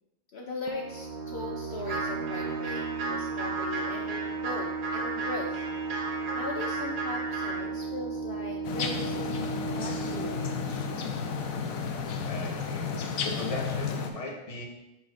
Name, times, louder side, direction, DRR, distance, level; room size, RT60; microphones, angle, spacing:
voice 1, 0.3-2.8 3.1-5.6 6.3-10.9, left 3 dB, 60° left, 0 dB, 0.8 m, -39 dB
sound 1, 0.7-11.9, right 4 dB, 70° right, 0.4 m, -35 dB
sound 2, 1.8-7.7, right 3 dB, 45° right, 0.8 m, -35 dB
sound 3, 8.6-14.1, left 5 dB, 85° left, 1.1 m, -32 dB
voice 2, 12.2-12.9 13.2-14.6, left 2 dB, 30° left, 0 dB, 0.9 m, -38 dB
10.5 x 4.2 x 2.5 m, 0.96 s
omnidirectional pair, 1.4 m